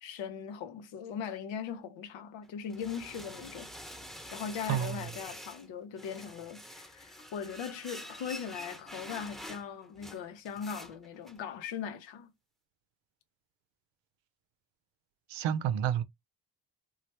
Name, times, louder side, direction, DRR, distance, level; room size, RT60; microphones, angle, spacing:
voice 1, 0.0-3.7 4.3-12.3, left 7 dB, 85° left, 0.7 m, -40 dB
sound 1, 2.4-5.7 6.0-11.4, equal, ahead, 0.9 m, -47 dB
voice 2, 4.7-5.0 15.3-16.0, right 10 dB, 80° right, 0.6 m, -30 dB
3.1 x 2.3 x 2.9 m
supercardioid pair, 50°, 44 cm